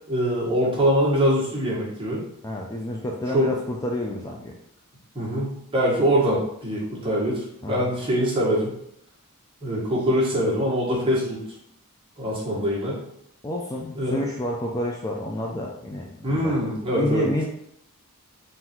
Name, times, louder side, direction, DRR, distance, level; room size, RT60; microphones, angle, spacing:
voice 1, 0.1-2.2 3.3-3.5 5.1-8.7 9.6-11.4 12.2-13.0 13.9-14.2 16.2-17.3, equal, 25° right, -6 dB, 1.5 m, -23 dB
voice 2, 2.4-4.5 7.6-7.9 13.4-16.5 16.9-17.4, left 1 dB, 15° left, -1 dB, 0.4 m, -29 dB
3.9 x 2.6 x 4.3 m, 0.73 s
head